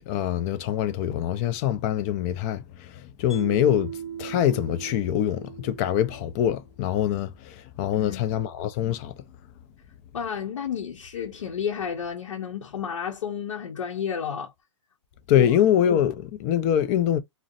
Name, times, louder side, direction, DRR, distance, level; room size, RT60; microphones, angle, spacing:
voice 1, 0.0-9.1 15.3-17.2, left 10 dB, 30° left, 0.5 m, -24 dB
Mallet percussion, 3.3-6.6, right 8 dB, ahead, 1.0 m, -38 dB
voice 2, 7.9-8.4 10.1-14.5 15.3-15.5, left 7 dB, 80° left, 0.7 m, -31 dB
2.5 x 2.1 x 2.4 m
hypercardioid pair, 140°, 16 cm